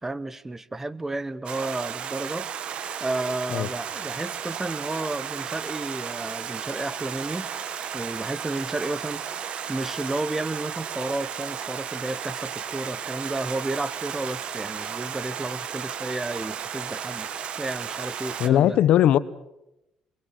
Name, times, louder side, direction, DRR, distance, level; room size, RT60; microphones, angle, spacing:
voice 1, 0.0-2.5 3.0-7.5 7.9-17.3 17.6-18.8, right 2 dB, 15° right, 18 dB, 1.0 m, -32 dB
Stream, 1.5-18.5, right 8 dB, 60° right, 1.5 m, -34 dB
voice 2, 18.4-19.2, left 12 dB, 75° left, 16 dB, 1.0 m, -18 dB
23.5 x 23.0 x 7.5 m, 0.87 s
cardioid pair, 95°, 2 cm